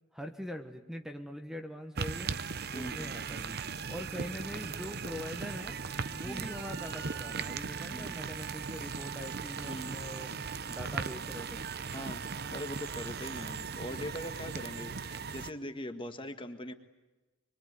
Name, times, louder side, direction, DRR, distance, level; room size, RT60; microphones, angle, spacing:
voice 1, 0.1-2.3 2.7-3.6 3.9-5.8 6.1-10.3 10.7-11.7, equal, ahead, 5 dB, 1.3 m, -43 dB
sound 1, 2.0-15.5, right 5 dB, 50° right, 0.9 m, -38 dB
voice 2, 2.7-3.1 3.8-3.9 6.3-6.5 7.9-8.2 9.6-10.0 11.9-12.2 12.5-16.7, left 1 dB, 25° left, 7 dB, 1.7 m, -41 dB
24.5 x 24.0 x 9.5 m, 1.1 s
head